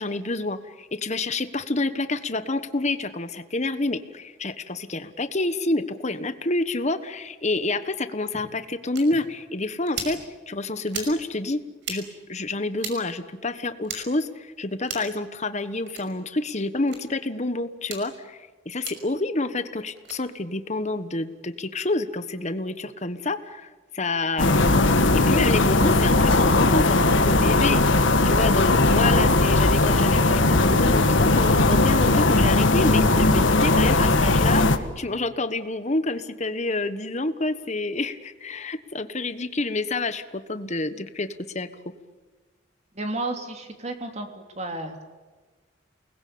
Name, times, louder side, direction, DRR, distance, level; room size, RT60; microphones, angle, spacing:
voice 1, 0.0-10.2 10.5-11.6 11.9-24.5 25.1-27.8 28.2-41.9, left 2 dB, 35° left, 11 dB, 1.4 m, -28 dB
sound 1, 8.9-9.0 9.9-10.1 10.9-11.1 11.8-12.0 12.8-13.0 13.8-14.0 14.8-15.1 15.9-16.0 16.9-17.0 17.8-18.0 18.8-19.0 20.0-20.2, right 5 dB, 60° right, 5.9 m, -34 dB
sound 2, 24.4-34.8, left 2 dB, 70° left, 1.7 m, -19 dB
voice 2, 42.9-44.3 44.5-45.1, right 2 dB, 35° right, 4 dB, 3.2 m, -32 dB
29.5 x 20.5 x 8.7 m, 1.3 s
head